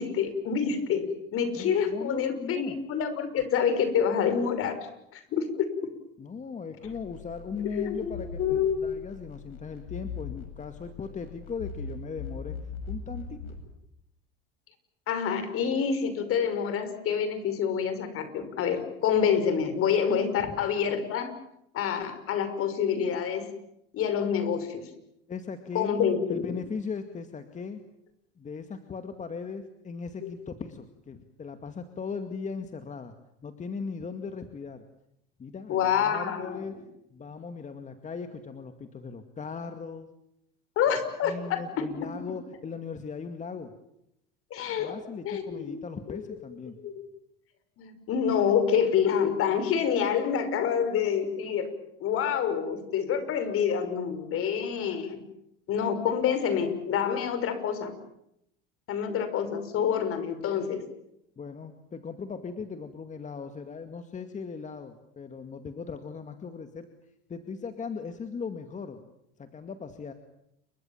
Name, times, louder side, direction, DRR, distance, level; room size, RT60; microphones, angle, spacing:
voice 1, 0.0-4.8 5.1-5.7 7.7-8.1 8.4-8.8 15.1-21.3 21.7-23.5 23.9-24.9 25.7-26.5 30.2-30.3 35.7-36.6 40.8-42.1 44.5-44.9 45.2-46.2 46.8-47.0 47.8-51.7 52.0-55.2 55.7-57.9 58.9-60.8, left 7 dB, 50° left, 10 dB, 5.8 m, -27 dB
voice 2, 1.5-2.8 6.2-12.6 12.9-13.4 20.4-20.6 25.3-26.0 26.3-27.8 28.4-33.1 33.4-34.8 35.4-40.1 41.2-43.7 44.8-46.8 61.4-66.9 67.3-69.1 69.4-70.1, left 5 dB, 25° left, 8 dB, 2.2 m, -38 dB
sound 1, 6.8-13.7, left 5 dB, 85° left, 7.3 m, -40 dB
29.5 x 24.0 x 7.4 m, 0.78 s
supercardioid pair, 100°, 29 cm